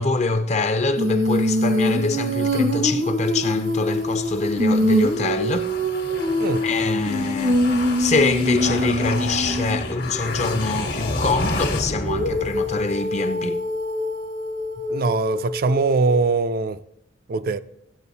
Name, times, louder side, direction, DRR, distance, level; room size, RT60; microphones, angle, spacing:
voice 1, 0.0-5.7 6.6-13.6, left 3 dB, 40° left, 0.6 m, -24 dB
Female singing, 1.0-9.8 12.0-16.3, left 1 dB, 80° right, 1.1 m, -24 dB
sound 1, 3.7-13.1, left 2 dB, 60° left, 1.3 m, -31 dB
voice 2, 14.9-16.8 17.3-17.6, right 4 dB, 50° right, 0.4 m, -21 dB
15.0 x 7.9 x 4.1 m
head